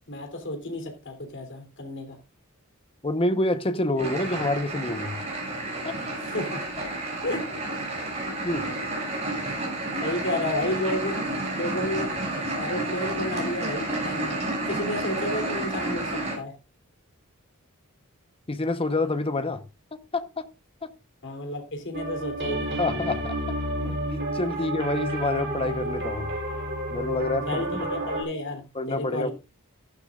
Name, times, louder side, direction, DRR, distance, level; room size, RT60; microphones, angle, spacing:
voice 1, 0.1-2.2 6.2-6.6 7.2-7.5 10.0-11.2 11.5-12.1 12.6-14.3 14.6-16.5 21.2-22.8 27.5-29.3, left 1 dB, 55° left, 3.3 m, -31 dB
voice 2, 3.0-5.2 5.8-6.0 8.4-8.7 18.5-19.6 20.1-20.5 20.8-20.9 22.8-23.5 23.8-26.3 26.9-27.6 28.7-29.3, left 2 dB, 25° left, 1.0 m, -27 dB
sound 1, 4.0-16.3, right 2 dB, 30° right, 6.5 m, -30 dB
sound 2, 21.9-28.2, right 1 dB, 55° right, 6.5 m, -30 dB
15.0 x 11.5 x 2.5 m
head